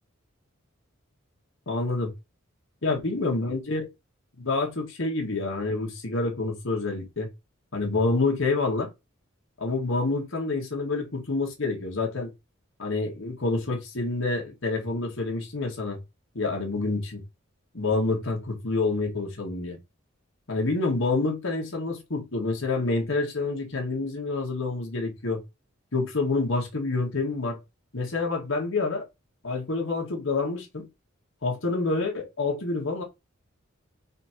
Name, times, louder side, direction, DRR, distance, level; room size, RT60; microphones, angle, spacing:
voice 1, 1.7-2.1 2.8-3.9 4.4-7.3 7.7-8.9 9.6-12.3 12.8-16.0 16.3-17.2 17.7-19.8 20.5-25.4 25.9-27.6 27.9-29.0 29.4-30.9 31.4-33.0, left 3 dB, 70° left, 1.5 m, -27 dB
4.2 x 2.8 x 4.4 m
head